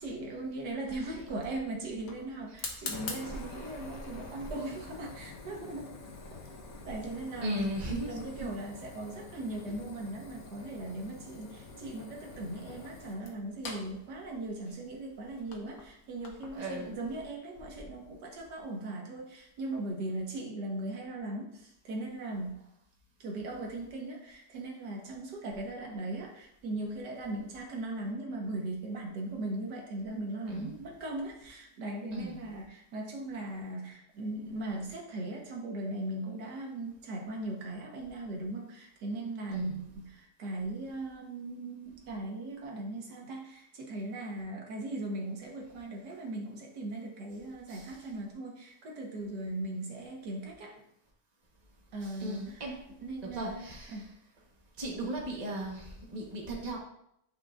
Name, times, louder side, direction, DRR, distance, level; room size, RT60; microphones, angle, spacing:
voice 1, 0.0-5.9 6.8-7.6 8.0-22.6 23.2-50.8 51.9-52.7 53.0-54.1, right 2 dB, 90° right, 0 dB, 1.8 m, -39 dB
Fire, 0.9-16.6, left 3 dB, 60° left, 1.4 m, -46 dB
voice 2, 7.4-8.5 16.6-17.0 30.5-30.7 32.1-32.4 39.5-39.7 47.7-47.9 52.2-52.7 53.2-54.0 54.8-56.8, equal, 25° right, -2 dB, 1.2 m, -36 dB
8.6 x 5.2 x 2.5 m, 0.76 s
omnidirectional pair, 1.7 m